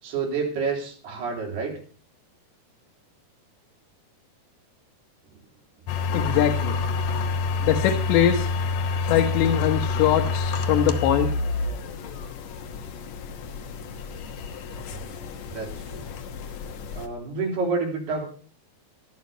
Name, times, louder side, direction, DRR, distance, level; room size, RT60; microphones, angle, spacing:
voice 1, 0.0-1.8 14.8-15.0 15.5-16.1 16.9-18.3, right 4 dB, 70° right, 0 dB, 5.6 m, -29 dB
sound 1, 5.9-17.1, left 4 dB, 70° left, 1.6 m, -28 dB
voice 2, 6.1-6.7 7.6-8.5 9.1-11.3, left 10 dB, 85° left, 4 dB, 3.4 m, -22 dB
15.5 x 11.5 x 5.5 m, 0.40 s
omnidirectional pair, 4.9 m